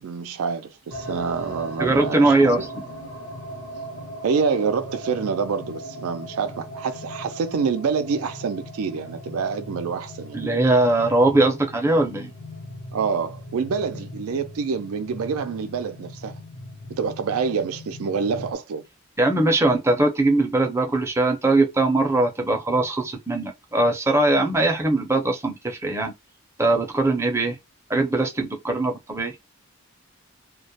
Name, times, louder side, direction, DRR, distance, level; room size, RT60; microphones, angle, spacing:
voice 1, 0.0-2.5 4.2-10.4 12.9-16.3 17.0-18.8, right 5 dB, 90° right, 0.4 m, -27 dB
sound 1, 0.9-18.5, equal, 65° left, 0.8 m, -39 dB
voice 2, 1.8-2.8 10.3-12.3 19.2-26.1 26.6-27.5 27.9-29.3, right 2 dB, 10° right, 0.5 m, -21 dB
2.2 x 2.0 x 2.7 m
head